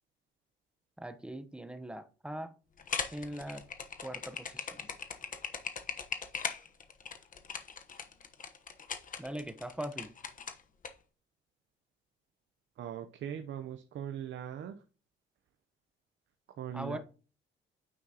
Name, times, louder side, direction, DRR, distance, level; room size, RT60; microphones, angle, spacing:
voice 1, 1.0-2.5 3.1-3.6 4.0-4.8 9.2-10.1 16.7-17.0, right 1 dB, 5° right, 0.9 m, -41 dB
sound 1, 2.8-10.9, left 6 dB, 40° left, 1.1 m, -39 dB
voice 2, 12.8-14.8 16.5-17.0, right 9 dB, 70° right, 0.8 m, -40 dB
9.5 x 5.9 x 2.9 m
cardioid pair, 90°, 20 cm